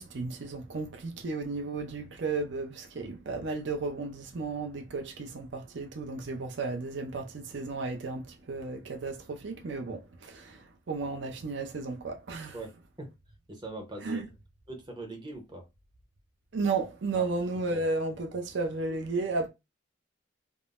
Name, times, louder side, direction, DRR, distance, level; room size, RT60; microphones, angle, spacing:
voice 1, 0.0-12.6 14.0-14.3 16.5-19.5, right 3 dB, 60° right, 0.5 m, -33 dB
voice 2, 12.5-13.2 13.5-14.3 14.7-15.7 17.1-17.8, right 2 dB, 20° right, 0.7 m, -42 dB
3.6 x 2.0 x 2.4 m
head